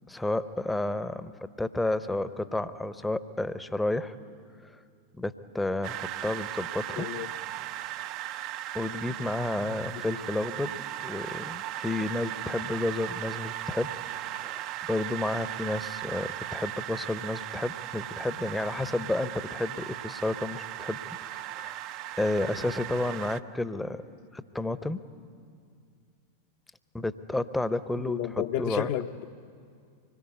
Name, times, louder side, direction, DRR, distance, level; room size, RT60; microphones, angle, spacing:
voice 1, 0.1-1.3 1.6-4.1 4.6-4.8 5.2-7.1 8.7-13.9 14.3-14.6 14.9-21.8 22.2-24.0 24.3-25.0 26.9-28.9, left 2 dB, 5° left, 0.8 m, -31 dB
sound 1, 5.8-23.4, right 14 dB, 40° right, 0.6 m, -37 dB
voice 2, 7.0-7.3 9.7-10.0 28.0-29.3, left 11 dB, 45° left, 0.8 m, -32 dB
25.0 x 22.0 x 9.6 m
figure-of-eight pair, 90°, 0 cm